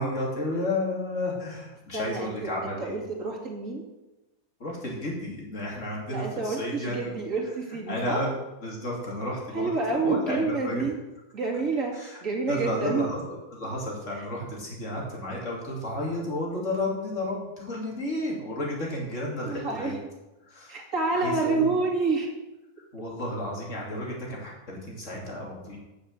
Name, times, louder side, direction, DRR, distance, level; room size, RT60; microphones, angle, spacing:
voice 1, 0.0-3.0 4.6-7.1 7.9-8.3 8.6-10.8 11.9-12.2 12.5-19.9 20.4-20.8 21.1-21.8 22.9-25.8, left 1 dB, 50° left, -3 dB, 3.1 m, -32 dB
voice 2, 1.9-3.8 6.1-8.2 9.5-11.0 11.3-13.1 14.1-14.2 19.4-20.0 20.7-22.3, right 3 dB, 55° right, -1 dB, 2.8 m, -28 dB
9.2 x 6.6 x 7.3 m, 1.0 s
omnidirectional pair, 1.6 m